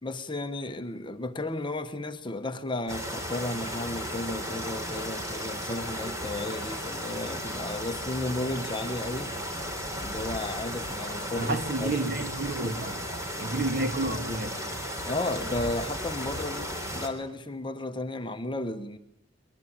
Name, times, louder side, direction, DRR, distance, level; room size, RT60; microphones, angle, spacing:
voice 1, 0.0-9.3 10.0-12.1 15.1-19.0, left 2 dB, 25° left, 1.1 m, -34 dB
sound 1, 2.9-17.1, equal, 15° right, 3.3 m, -35 dB
voice 2, 11.4-13.1 13.4-14.6, right 2 dB, 50° right, 2.3 m, -30 dB
23.5 x 21.5 x 8.8 m
head